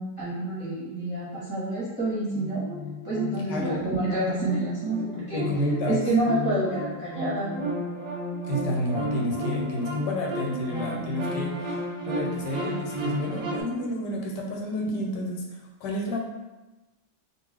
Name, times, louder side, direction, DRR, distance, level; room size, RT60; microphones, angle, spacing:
voice 1, 0.2-2.6 3.0-5.4 5.9-7.5, right 2 dB, 15° right, -10 dB, 0.7 m, -28 dB
sound 1, 2.3-13.6, left 1 dB, 50° right, 0.8 m, -32 dB
voice 2, 3.5-3.9 5.3-6.0 8.4-16.2, equal, 85° left, 0 dB, 1.2 m, -30 dB
2.5 x 2.4 x 3.3 m, 1.1 s
omnidirectional pair, 1.8 m